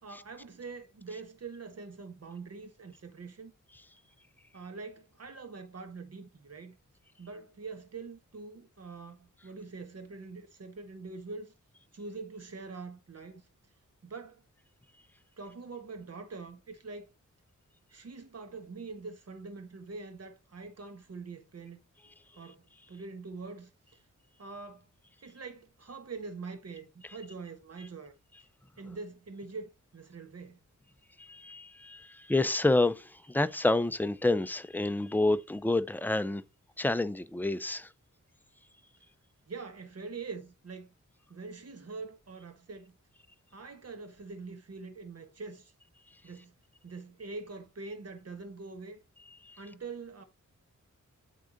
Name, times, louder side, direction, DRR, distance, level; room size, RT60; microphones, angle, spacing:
voice 1, 0.0-3.5 4.5-6.8 7.2-11.5 11.9-13.5 14.0-14.4 15.4-17.1 17.9-24.0 24.4-24.9 25.2-28.1 28.8-30.6 39.5-40.9 41.3-43.0 43.5-45.7 46.2-46.5 46.8-49.0 49.6-50.2, right 4 dB, 50° right, 1.3 m, -44 dB
voice 2, 31.2-36.4 36.8-37.9 49.5-49.6, left 2 dB, 5° left, 0.4 m, -29 dB
8.5 x 3.8 x 3.9 m
wide cardioid pair, 110°, 31 cm